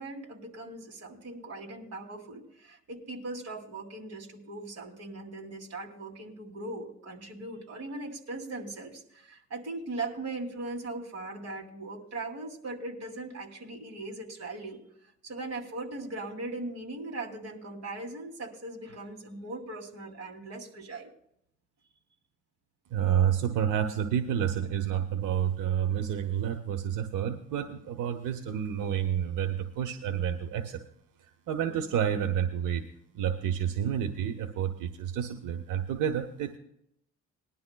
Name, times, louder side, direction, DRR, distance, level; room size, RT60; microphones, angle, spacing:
voice 1, 0.0-14.8 15.2-21.1 31.6-31.8, right 2 dB, 55° right, 2 dB, 2.7 m, -39 dB
voice 2, 22.9-30.8 31.2-32.8 33.1-36.6, right 9 dB, 90° right, 6 dB, 0.9 m, -29 dB
20.5 x 11.0 x 2.2 m, 0.74 s
cardioid pair, 90°, 30 cm